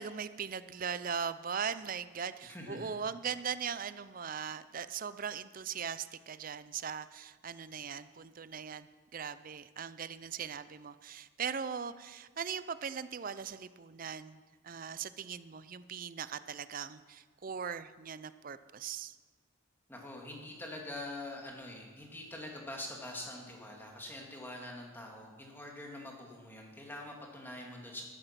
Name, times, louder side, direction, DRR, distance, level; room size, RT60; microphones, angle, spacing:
voice 1, 0.0-8.9 9.1-14.4 14.6-19.2, right 7 dB, 40° right, 14 dB, 0.5 m, -39 dB
voice 2, 2.4-2.9 19.9-28.0, left 1 dB, 10° left, 0 dB, 2.2 m, -44 dB
13.5 x 13.0 x 5.9 m, 1.5 s
head